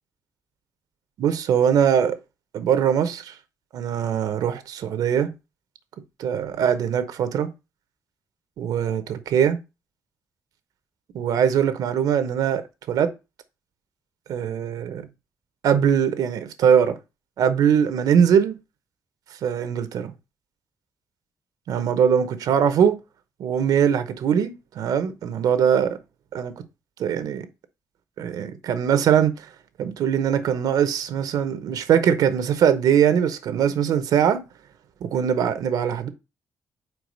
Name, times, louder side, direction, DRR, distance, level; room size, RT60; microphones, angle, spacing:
voice 1, 1.2-2.2 2.5-3.3 3.7-5.3 6.2-7.5 8.6-9.6 11.1-12.6 12.9-13.1 14.3-15.1 15.6-17.0 17.4-18.6 19.4-20.1 21.7-23.0 23.4-26.0 26.3-26.6 27.0-27.5 28.2-29.5 29.8-34.4 35.0-36.1, right 8 dB, 75° right, 0.8 m, -21 dB
4.7 x 4.5 x 5.3 m
cardioid pair, 150°, 7 cm